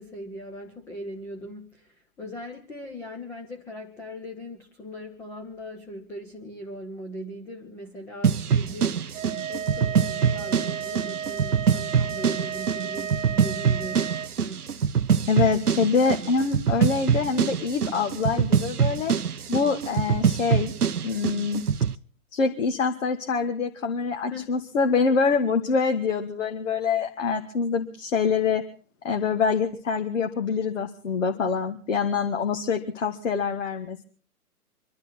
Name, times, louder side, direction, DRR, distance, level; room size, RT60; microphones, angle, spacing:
voice 1, 0.0-9.0 9.5-14.6 24.3-24.6, equal, 5° left, 2 dB, 0.8 m, -39 dB
sound 1, 8.2-21.9, right 7 dB, 85° right, 0.7 m, -24 dB
sound 2, 9.1-14.3, right 8 dB, 60° right, 1.0 m, -33 dB
voice 2, 15.3-19.1 19.5-20.7 21.0-21.6 22.3-28.6 29.0-34.0, left 5 dB, 55° left, 4 dB, 1.8 m, -25 dB
25.0 x 12.0 x 4.3 m, 0.41 s
figure-of-eight pair, 130°, 44 cm